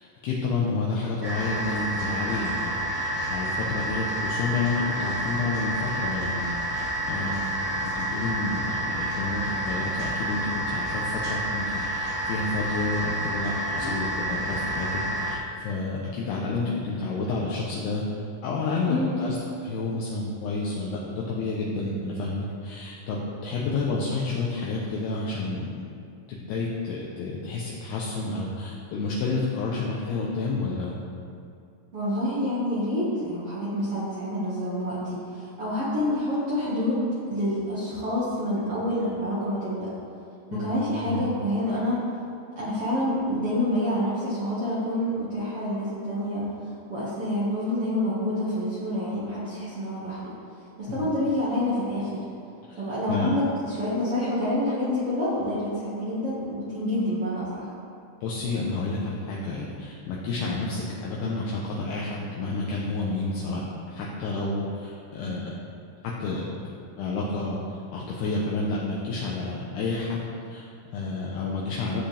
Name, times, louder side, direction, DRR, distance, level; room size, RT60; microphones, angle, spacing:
voice 1, 0.0-19.4 19.6-25.7 26.3-31.0 40.5-40.7 41.0-41.2 50.9-51.1 52.7-52.8 53.1-53.3 58.2-65.5 66.0-72.0, left 3 dB, 80° left, -4 dB, 2.4 m, -30 dB
sound 1, 1.2-15.3, right 1 dB, 50° right, 1.0 m, -29 dB
voice 2, 18.8-19.1 31.9-39.9 40.5-42.0 42.5-50.3 50.8-52.2 52.7-57.7, left 1 dB, 80° right, -10 dB, 1.3 m, -27 dB
15.0 x 7.8 x 3.4 m, 2.5 s
omnidirectional pair, 5.8 m